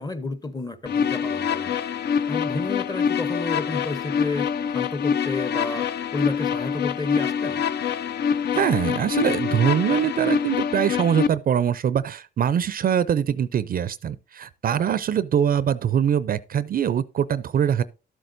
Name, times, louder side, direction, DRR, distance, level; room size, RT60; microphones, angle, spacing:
voice 1, 0.0-1.8 2.3-7.6, left 2 dB, 20° left, 0.9 m, -32 dB
sound 1, 0.9-11.3, left 7 dB, 55° left, 0.5 m, -25 dB
voice 2, 8.5-17.8, right 8 dB, 45° right, 0.5 m, -23 dB
12.5 x 7.8 x 2.6 m
cardioid pair, 90°, 20 cm